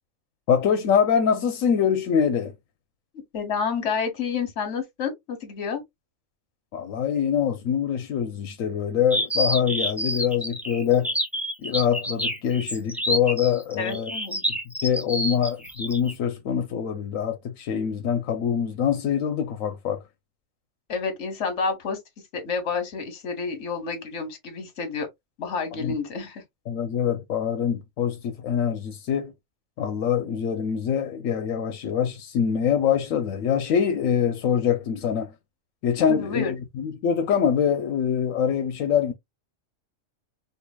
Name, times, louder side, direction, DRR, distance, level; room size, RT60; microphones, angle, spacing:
voice 1, 0.5-2.5 6.7-11.1 11.6-14.1 14.5-20.0 25.8-26.0 26.7-29.3 29.8-35.3 35.8-39.1, left 8 dB, 85° left, 1.1 m, -24 dB
voice 2, 3.3-5.8 13.8-14.4 20.9-22.0 22.4-25.1 25.4-26.4 36.1-36.5, left 5 dB, 65° left, 1.4 m, -29 dB
sound 1, 9.1-16.1, equal, ahead, 0.6 m, -28 dB
4.6 x 2.7 x 2.2 m
omnidirectional pair, 1.3 m